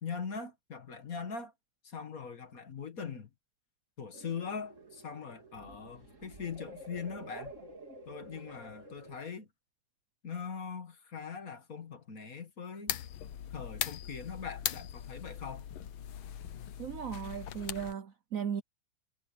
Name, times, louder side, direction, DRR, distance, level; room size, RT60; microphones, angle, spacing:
voice 1, 0.0-1.5 1.8-3.3 4.0-7.5 8.1-9.5 10.2-13.0 13.5-15.7, left 6 dB, 45° left, 1.9 m, -41 dB
sound 1, 4.1-9.2, right 2 dB, 35° right, 3.6 m, -50 dB
sound 2, 12.9-17.9, left 10 dB, 80° left, 1.8 m, -40 dB
voice 2, 16.8-18.6, right 8 dB, 60° right, 0.9 m, -37 dB
omnidirectional pair, 2.2 m